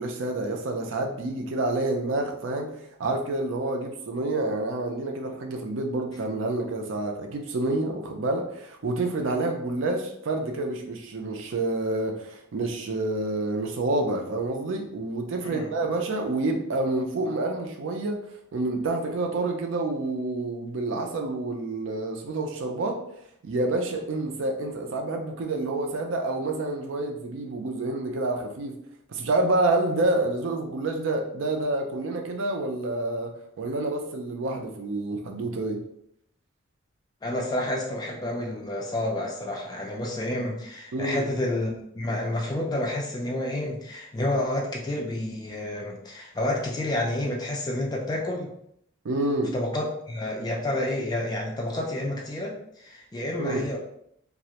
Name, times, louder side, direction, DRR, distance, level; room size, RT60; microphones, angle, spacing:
voice 1, 0.0-2.7 3.0-18.2 18.5-23.0 23.4-28.7 29.1-35.8 40.9-41.3 49.0-49.5 53.4-53.7, right 2 dB, 70° right, 3 dB, 0.4 m, -28 dB
voice 2, 37.2-48.5 49.5-53.8, left 1 dB, 20° left, 0 dB, 0.3 m, -29 dB
2.4 x 2.0 x 2.8 m, 0.73 s
head